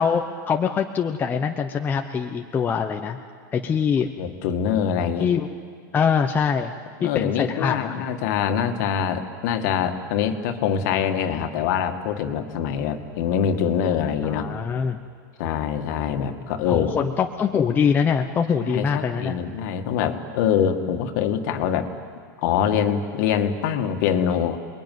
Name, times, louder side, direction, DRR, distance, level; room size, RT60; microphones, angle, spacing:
voice 1, 0.0-3.2 3.5-4.1 5.2-5.5 5.9-6.7 7.0-8.1 14.2-15.0 16.7-19.4, left 6 dB, 15° left, 4 dB, 0.9 m, -23 dB
voice 2, 4.2-5.3 7.0-14.5 15.4-17.0 18.6-21.9 22.4-24.6, left 8 dB, 55° left, 6 dB, 2.1 m, -24 dB
28.5 x 22.0 x 9.5 m, 2.1 s
supercardioid pair, 150°, 11 cm